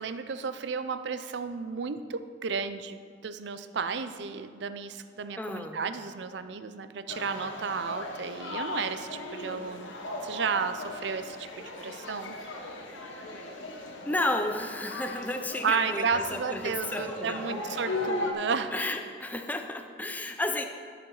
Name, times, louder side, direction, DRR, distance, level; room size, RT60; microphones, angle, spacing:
voice 1, 0.0-9.9 10.2-12.4 15.6-18.7 20.1-20.2, right 5 dB, 65° right, 11 dB, 0.5 m, -33 dB
voice 2, 5.4-5.8 14.0-17.5 18.7-20.7, left 2 dB, 10° left, 5 dB, 0.4 m, -32 dB
sound 1, 7.1-18.3, left 2 dB, 90° left, 1.1 m, -37 dB
13.0 x 6.6 x 3.9 m, 2.2 s
head